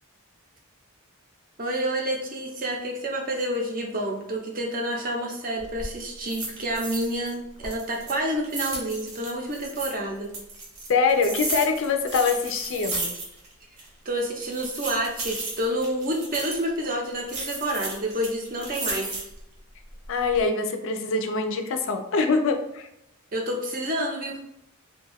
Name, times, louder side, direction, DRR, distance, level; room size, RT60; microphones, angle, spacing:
voice 1, 1.6-10.3 14.0-19.2 23.3-24.4, right 1 dB, 40° right, 0 dB, 0.6 m, -29 dB
sound 1, 5.6-5.9 6.3-7.3 7.6-9.9 10.3-13.5 13.8-13.9 14.4-16.7 17.3-19.4 19.9-20.4, right 2 dB, 70° right, 0.8 m, -34 dB
voice 2, 10.9-13.2 20.1-22.9, left 4 dB, 60° left, 6 dB, 0.4 m, -24 dB
2.6 x 2.2 x 3.4 m, 0.80 s
head